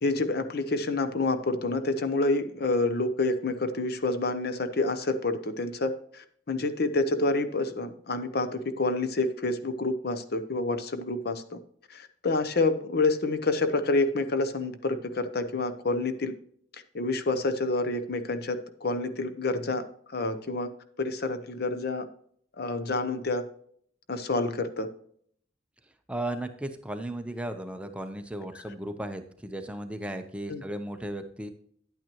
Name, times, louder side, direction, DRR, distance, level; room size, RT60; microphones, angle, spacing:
voice 1, 0.0-11.6 11.9-16.3 16.9-19.8 20.1-20.7 21.0-22.1 22.6-23.5 24.1-24.9 30.5-30.6, left 2 dB, 60° left, 11 dB, 0.7 m, -28 dB
voice 2, 26.1-31.5, right 1 dB, 5° right, 6 dB, 0.7 m, -35 dB
10.5 x 8.9 x 3.0 m, 0.62 s
head